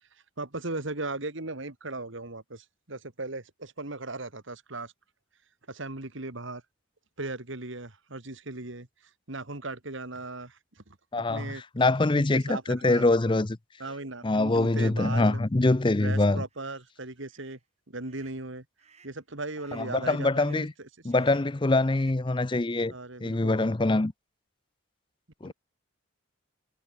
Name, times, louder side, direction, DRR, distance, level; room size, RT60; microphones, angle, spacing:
voice 1, 0.4-4.9 5.7-6.6 7.2-8.9 9.3-11.0 11.3-11.6 12.3-13.1 13.8-15.4 16.0-17.6 17.9-18.6 19.0-20.7 22.9-23.6 25.4-25.5, right 2 dB, 65° right, 2.2 m, -37 dB
voice 2, 11.1-13.6 14.2-16.4 19.7-20.7 21.0-22.9 23.2-24.1 25.4-25.5, left 2 dB, 25° left, 0.5 m, -24 dB
sound 1, 16.5-16.8 17.3-17.6 18.0-18.4 18.8-19.2 19.5-19.9 20.3-20.8 21.1-21.6 21.8-22.3, right 6 dB, 30° right, 7.4 m, -58 dB
head